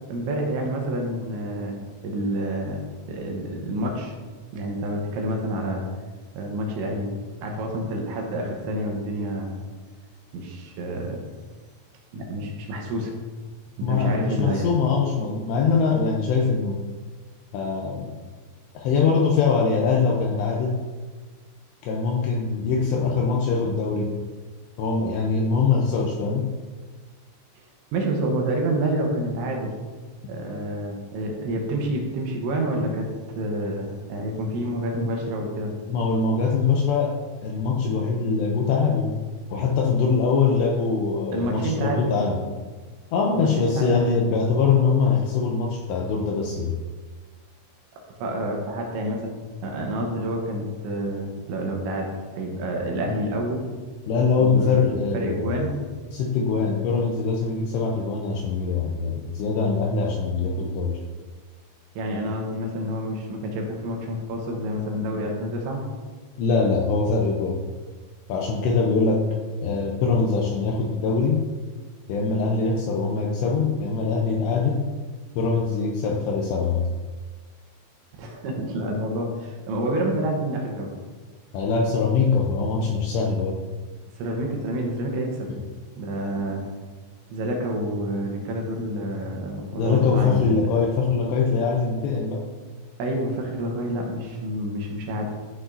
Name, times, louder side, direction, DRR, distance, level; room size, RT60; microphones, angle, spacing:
voice 1, 0.1-4.1 4.5-5.9 6.3-9.5 10.3-11.2 12.1-13.1 13.8-14.7 27.9-29.8 30.3-35.8 41.3-42.1 43.4-44.1 48.2-49.3 49.6-53.7 54.4-54.9 55.1-55.8 62.0-65.8 78.2-80.9 84.2-85.5 86.0-86.7 87.3-90.6 93.0-95.3, right 1 dB, 75° right, 0 dB, 3.2 m, -28 dB
voice 2, 13.8-16.8 17.5-18.1 18.7-20.8 21.8-24.1 24.8-26.5 35.9-39.2 39.5-42.4 43.1-46.7 54.1-55.6 56.1-61.0 66.4-67.6 68.3-69.4 69.6-71.4 72.1-74.9 75.3-76.9 81.5-83.6 89.7-92.5, left 4 dB, 85° left, 0 dB, 2.5 m, -23 dB
13.5 x 6.1 x 2.7 m, 1.4 s
omnidirectional pair, 5.7 m